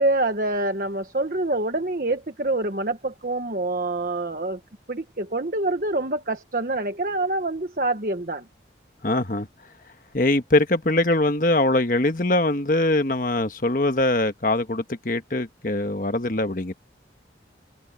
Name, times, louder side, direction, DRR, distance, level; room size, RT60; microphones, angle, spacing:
voice 1, 0.0-4.6 4.9-8.4, right 2 dB, 50° right, 1.2 m, -26 dB
voice 2, 9.0-9.5 10.1-16.7, left 2 dB, 50° left, 1.3 m, -22 dB
head